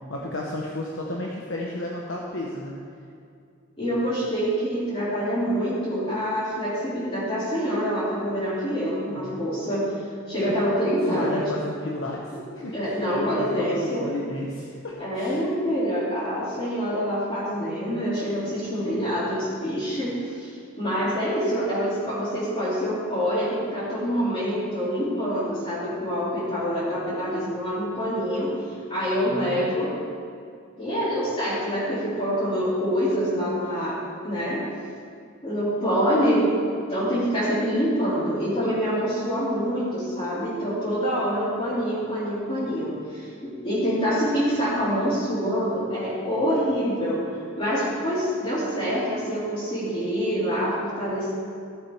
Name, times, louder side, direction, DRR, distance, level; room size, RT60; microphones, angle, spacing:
voice 1, 0.1-2.7 9.2-9.4 10.4-10.5 11.1-12.3 12.6-15.4 29.2-29.7, left 1 dB, 65° left, -2 dB, 1.1 m, -33 dB
voice 2, 3.8-9.8 10.3-11.4 12.6-14.0 15.0-20.5 20.8-28.5 28.9-29.9 30.8-34.6 35.4-36.6 36.9-47.2 47.6-51.3, equal, 25° left, -11 dB, 3.3 m, -26 dB
14.5 x 7.4 x 4.7 m, 2.4 s
head